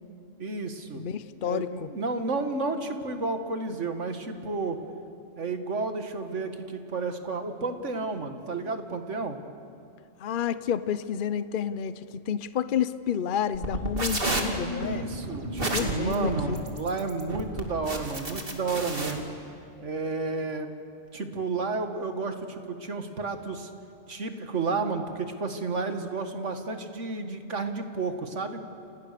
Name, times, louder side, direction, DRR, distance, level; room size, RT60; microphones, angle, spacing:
voice 1, 0.4-1.0 1.5-4.8 5.4-9.4 14.6-19.3 19.8-20.7 21.1-23.7 24.1-28.6, right 3 dB, 65° right, 6 dB, 2.1 m, -31 dB
voice 2, 1.0-1.9 10.2-15.1 15.7-16.6, left 8 dB, 45° left, 13 dB, 0.8 m, -30 dB
sound 1, 13.5-19.1, right 2 dB, 45° right, 2.7 m, -31 dB
30.0 x 27.5 x 6.8 m, 2.6 s
omnidirectional pair, 1.4 m